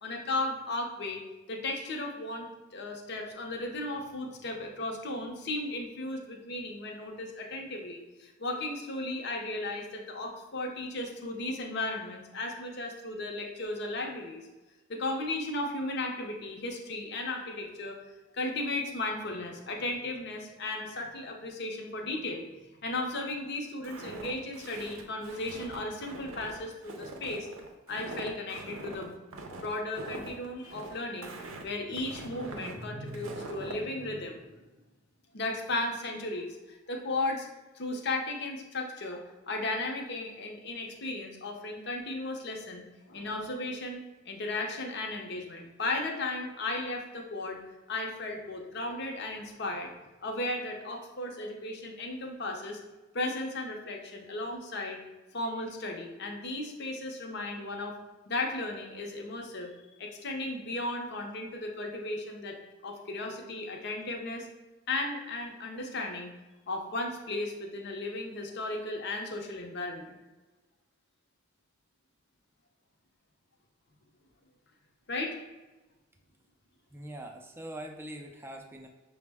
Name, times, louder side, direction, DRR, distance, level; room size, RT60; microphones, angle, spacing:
voice 1, 0.0-1.2 1.5-14.5 14.9-18.0 18.3-22.4 22.8-27.5 27.9-34.6 35.3-37.5 37.7-39.2 39.5-47.6 47.9-49.9 50.2-52.8 53.1-55.0 55.3-58.0 58.3-59.7 60.0-62.6 62.8-64.5 64.9-66.3 66.7-70.2 75.1-75.4, left 2 dB, 55° left, 2 dB, 0.6 m, -35 dB
Walk footsteps, 23.8-33.8, right 2 dB, 85° right, 0.5 m, -43 dB
voice 2, 76.9-78.9, right 1 dB, 10° right, 2 dB, 0.3 m, -43 dB
5.9 x 2.1 x 3.4 m, 1.1 s
head